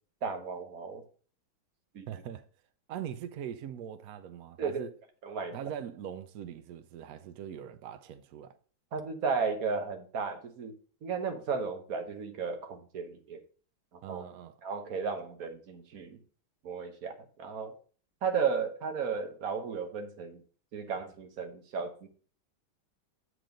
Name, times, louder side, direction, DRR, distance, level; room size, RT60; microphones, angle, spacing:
voice 1, 0.2-1.0 1.9-2.1 4.6-4.9 5.2-5.6 8.9-10.7 11.0-13.4 13.9-14.2 14.6-16.2 16.6-17.7 18.2-20.4 20.7-22.1, right 5 dB, 50° right, 1.3 m, -34 dB
voice 2, 2.1-2.5 2.9-4.9 5.5-8.5 14.0-14.5, right 9 dB, 85° right, 0.7 m, -41 dB
7.6 x 4.8 x 5.1 m
omnidirectional pair, 2.2 m